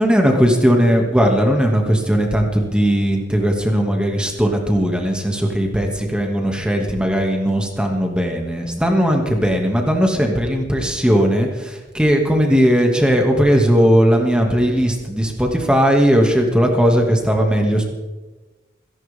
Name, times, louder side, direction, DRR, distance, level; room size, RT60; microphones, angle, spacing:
voice 1, 0.0-17.8, equal, 5° right, 1 dB, 2.2 m, -17 dB
28.0 x 11.0 x 3.7 m, 1.2 s
head